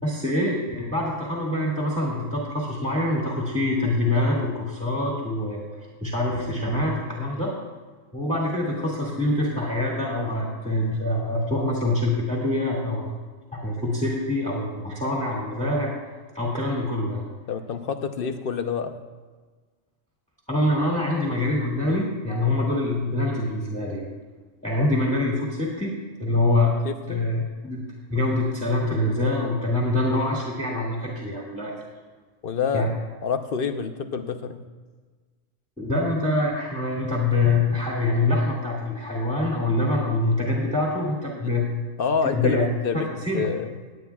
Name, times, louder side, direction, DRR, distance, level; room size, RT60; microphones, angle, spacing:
voice 1, 0.0-5.6 6.0-7.5 8.1-13.1 13.5-17.3 20.5-24.1 24.6-25.9 26.2-26.7 27.1-27.8 28.1-31.7 32.7-32.9 35.8-41.7 42.2-42.7 42.9-43.5, left 2 dB, 5° left, -4 dB, 2.0 m, -25 dB
voice 2, 17.5-18.9 26.8-27.2 32.4-32.9 33.2-34.6 41.4-41.5 42.0-43.8, left 6 dB, 50° left, 8 dB, 0.8 m, -27 dB
20.0 x 9.1 x 2.3 m, 1.4 s
omnidirectional pair, 1.4 m